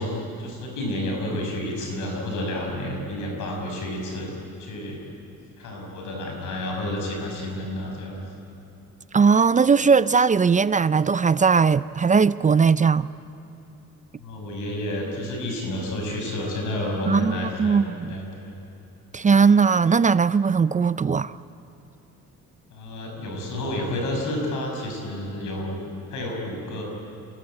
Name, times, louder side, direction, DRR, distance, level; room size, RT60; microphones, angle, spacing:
voice 1, 0.0-4.3 4.6-5.0 5.6-8.2 14.2-18.6 22.7-25.8 26.1-26.8, left 1 dB, 90° left, 6.7 m, -30 dB
voice 2, 9.1-13.1 17.1-18.2 19.1-21.3, right 5 dB, 25° right, 0.5 m, -19 dB
26.0 x 18.0 x 8.9 m
cardioid pair, 90°, 30 cm